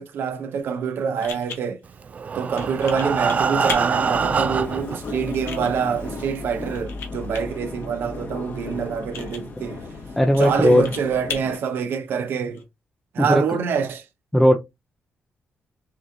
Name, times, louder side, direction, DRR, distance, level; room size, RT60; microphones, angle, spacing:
voice 1, 0.0-1.8 2.3-9.9 10.4-12.6 13.1-14.0, right 6 dB, 75° right, 0.7 m, -26 dB
sound 1, 0.6-12.6, left 6 dB, 90° left, 1.1 m, -40 dB
Breathing, 2.0-5.0 5.7-5.8 6.2-6.3 6.7-6.8, right 5 dB, 40° right, 0.3 m, -24 dB
sound 2, 2.5-11.6, left 3 dB, 55° left, 1.5 m, -35 dB
voice 2, 10.2-10.9 13.2-13.4 14.3-14.5, left 1 dB, 5° left, 0.6 m, -16 dB
6.0 x 2.6 x 2.7 m
cardioid pair, 105°, 4 cm